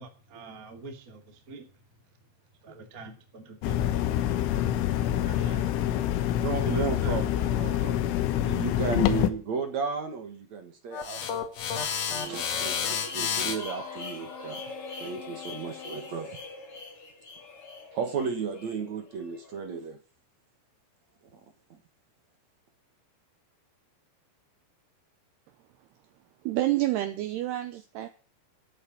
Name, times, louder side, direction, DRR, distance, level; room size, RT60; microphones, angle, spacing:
voice 1, 0.0-1.8 2.6-4.3 5.2-5.7 6.6-8.1, right 3 dB, 30° right, 5 dB, 1.7 m, -46 dB
sound 1, 3.6-9.3, left 12 dB, 80° left, 3.5 m, -26 dB
voice 2, 6.4-11.2 12.1-14.6 15.0-16.4 17.9-20.0, right 6 dB, 60° right, 7 dB, 2.0 m, -34 dB
sound 2, 10.9-16.1, left 7 dB, 55° left, 2.6 m, -33 dB
sound 3, 11.7-19.6, left 3 dB, 40° left, 2.5 m, -43 dB
voice 3, 26.4-28.1, right 15 dB, 75° right, 9 dB, 2.5 m, -28 dB
12.0 x 8.8 x 8.6 m, 0.38 s
omnidirectional pair, 5.6 m